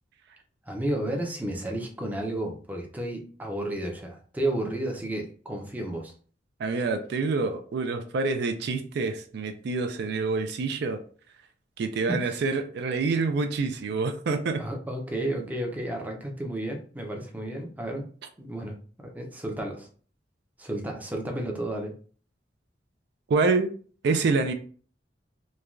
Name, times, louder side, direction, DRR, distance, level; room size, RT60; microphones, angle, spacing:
voice 1, 0.7-6.1 12.1-12.4 14.6-18.1 18.4-19.9 20.6-21.9, right 1 dB, 10° right, 1 dB, 0.5 m, -32 dB
voice 2, 6.6-11.0 11.8-14.6 23.3-23.7 24.0-24.5, right 4 dB, 65° right, 6 dB, 0.3 m, -27 dB
3.1 x 2.2 x 2.4 m, 0.42 s
head